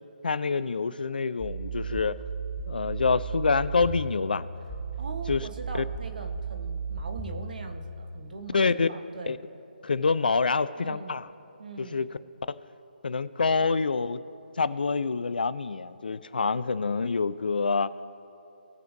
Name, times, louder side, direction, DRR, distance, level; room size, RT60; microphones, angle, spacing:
voice 1, 0.2-2.2 2.7-4.4 5.3-5.4 5.7-5.8 8.5-8.9 9.3-9.4 9.8-11.3 11.8-12.1 12.5-12.6 13.0-14.2 14.6-17.9, left 4 dB, 65° left, 15 dB, 0.5 m, -26 dB
sound 1, 1.4-7.8, right 5 dB, ahead, 2.1 m, -35 dB
voice 2, 5.0-9.4 10.7-11.2 11.6-12.0, right 3 dB, 55° right, 5 dB, 1.2 m, -41 dB
20.0 x 6.9 x 2.7 m, 2.8 s
figure-of-eight pair, 150°, 5 cm